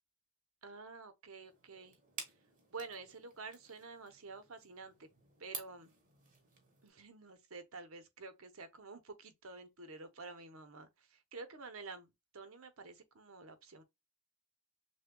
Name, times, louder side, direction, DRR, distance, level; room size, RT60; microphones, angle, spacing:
voice 1, 0.6-2.0 2.7-5.1 5.4-5.9 6.8-13.8, right 4 dB, 65° right, 0.8 m, -50 dB
sound 1, 1.4-6.9, right 4 dB, 35° right, 1.2 m, -52 dB
6.2 x 2.2 x 2.2 m
head